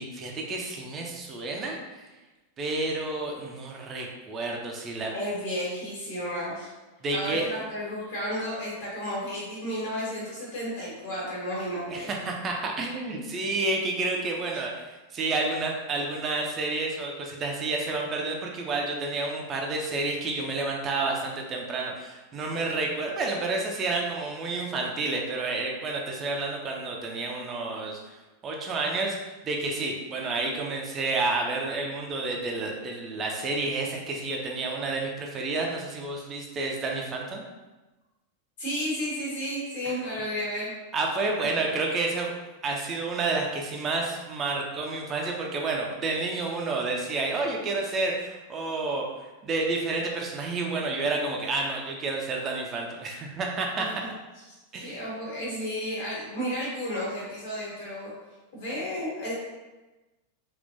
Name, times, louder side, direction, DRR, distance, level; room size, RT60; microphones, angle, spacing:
voice 1, 0.0-2.1 2.6-5.1 7.0-7.5 11.9-28.0 28.4-29.2 29.4-37.4 40.9-42.3 42.6-49.1 49.4-53.9 54.7-55.0, right 3 dB, 25° right, 0 dB, 0.5 m, -30 dB
voice 2, 5.1-6.7 7.1-12.1 38.6-40.7 53.8-54.1 54.7-58.1 58.5-59.3, equal, 50° left, -6 dB, 1.4 m, -32 dB
3.6 x 2.4 x 2.6 m, 1.1 s
figure-of-eight pair, 90°, 0 cm